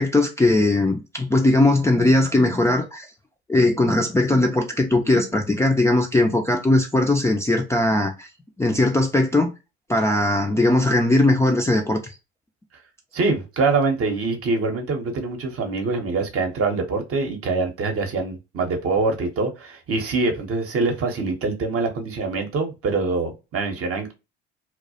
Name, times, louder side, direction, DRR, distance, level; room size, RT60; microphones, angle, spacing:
voice 1, 0.0-3.1 3.5-8.3 8.6-9.5 9.9-12.0, left 2 dB, 10° left, 0.4 m, -19 dB
voice 2, 13.1-24.1, right 3 dB, 45° right, 0.8 m, -24 dB
2.3 x 2.0 x 2.6 m
hypercardioid pair, 55°, 32 cm